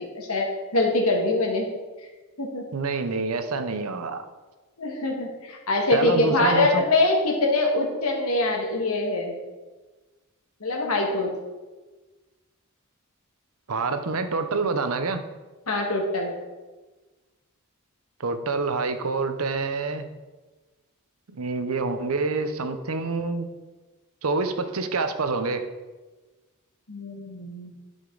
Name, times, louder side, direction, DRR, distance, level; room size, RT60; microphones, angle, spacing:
voice 1, 0.0-1.7 2.4-2.7 4.8-9.4 10.6-11.3 15.7-16.3 26.9-27.7, left 2 dB, 85° left, 1 dB, 1.7 m, -24 dB
voice 2, 2.7-4.2 5.9-6.8 13.7-15.2 18.2-20.1 21.3-23.5 24.2-25.7, right 3 dB, 80° right, 9 dB, 0.7 m, -27 dB
11.5 x 5.4 x 3.9 m, 1.2 s
head